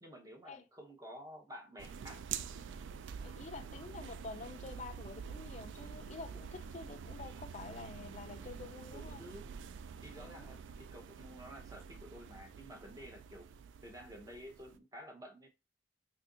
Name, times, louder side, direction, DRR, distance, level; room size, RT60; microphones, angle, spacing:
voice 1, 0.0-2.2 9.0-9.6 10.0-13.5 13.8-15.5, equal, 20° right, 0.7 m, -51 dB
sound 1, 1.8-14.8, right 7 dB, 85° right, 0.3 m, -47 dB
voice 2, 3.2-9.2 10.2-10.5, left 4 dB, 40° left, 0.4 m, -48 dB
2.7 x 2.4 x 3.7 m
head